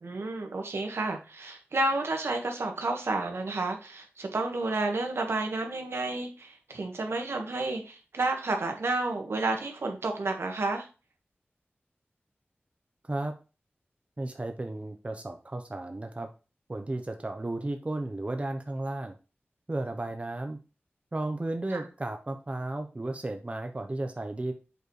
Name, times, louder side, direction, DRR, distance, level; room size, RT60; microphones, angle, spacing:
voice 1, 0.0-10.9 21.7-21.8, right 2 dB, 75° right, 4 dB, 1.5 m, -31 dB
voice 2, 14.2-16.3 16.7-19.1 19.7-20.6 21.1-24.5, right 2 dB, 30° right, 5 dB, 0.8 m, -34 dB
7.9 x 4.5 x 3.2 m, 0.32 s
wide cardioid pair, 80°, 4 cm